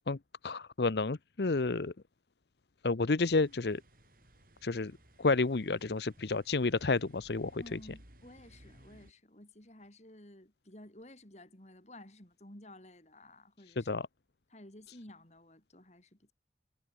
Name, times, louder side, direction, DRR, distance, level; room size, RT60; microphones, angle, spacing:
voice 1, 0.4-1.9 2.8-3.8 4.6-4.9 5.2-7.8 13.8-14.1, left 3 dB, 65° left, 0.7 m, -30 dB
sound 1, 3.2-9.1, right 1 dB, 50° right, 5.6 m, -60 dB
voice 2, 7.6-13.9 14.5-16.3, left 1 dB, 40° left, 3.9 m, -54 dB
head